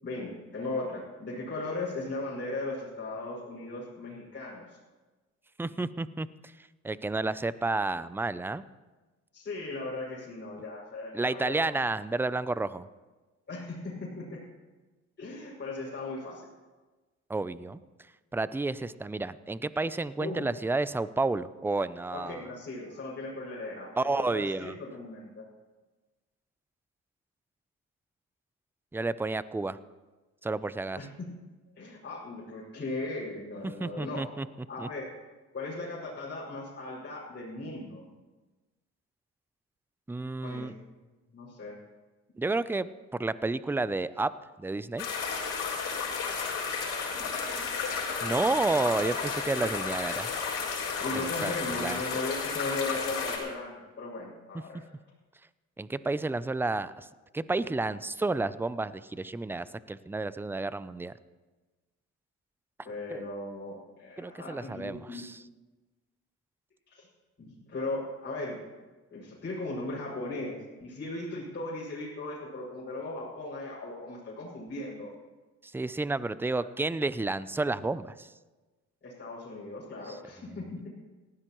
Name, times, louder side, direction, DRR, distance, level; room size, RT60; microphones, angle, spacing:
voice 1, 0.0-4.8 9.3-11.7 13.5-14.4 15.2-16.5 20.2-20.5 22.1-25.5 30.9-31.4 31.8-34.2 34.7-35.1 35.5-38.0 40.4-40.7 41.3-41.8 49.2-49.3 51.0-54.8 62.8-65.2 66.9-67.1 67.4-68.6 69.1-75.1 79.0-80.9, left 2 dB, 35° left, -8 dB, 5.8 m, -37 dB
voice 2, 5.6-6.3 6.8-8.6 11.1-12.9 17.3-17.8 18.3-22.4 24.0-24.8 28.9-29.8 30.4-31.1 33.8-34.5 34.8-34.9 40.1-40.7 42.4-44.3 44.6-45.1 48.2-50.3 51.1-52.0 55.8-57.1 57.3-61.1 63.1-63.2 64.2-65.4 75.6-78.3, right 3 dB, 5° right, 16 dB, 0.4 m, -31 dB
sound 1, 45.0-53.4, left 5 dB, 90° left, 4.2 m, -32 dB
19.0 x 14.5 x 3.1 m, 1.2 s
cardioid pair, 90°, 30 cm